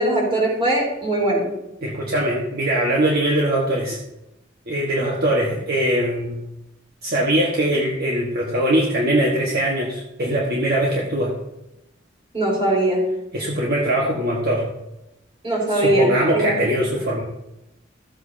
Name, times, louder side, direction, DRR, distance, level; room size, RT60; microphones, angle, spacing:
voice 1, 0.0-1.5 12.3-13.0 15.4-16.6, right 1 dB, 25° right, -4 dB, 3.8 m, -20 dB
voice 2, 1.8-4.0 4.7-6.4 7.0-11.3 13.3-14.7 15.7-17.2, right 1 dB, 50° right, -3 dB, 1.4 m, -21 dB
14.5 x 8.1 x 2.7 m, 0.89 s
head